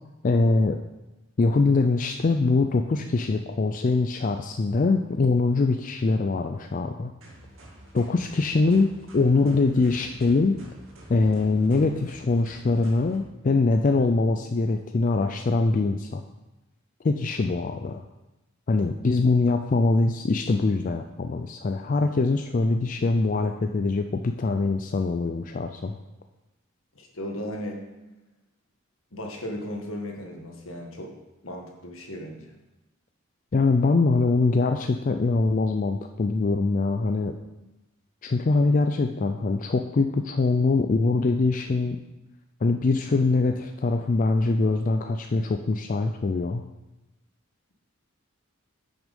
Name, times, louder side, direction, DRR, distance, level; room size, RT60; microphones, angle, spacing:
voice 1, 0.2-0.8 1.4-7.1 7.9-10.6 11.1-16.2 17.0-18.0 18.7-26.0 33.5-37.4 38.2-42.0 42.6-46.6, left 3 dB, 40° left, 6 dB, 0.4 m, -23 dB
sound 1, 7.2-13.2, right 1 dB, 70° right, 2.1 m, -48 dB
voice 2, 26.9-27.8 29.1-31.1 31.4-32.5, equal, 75° left, 1 dB, 1.6 m, -36 dB
8.9 x 6.1 x 5.3 m, 1.0 s
head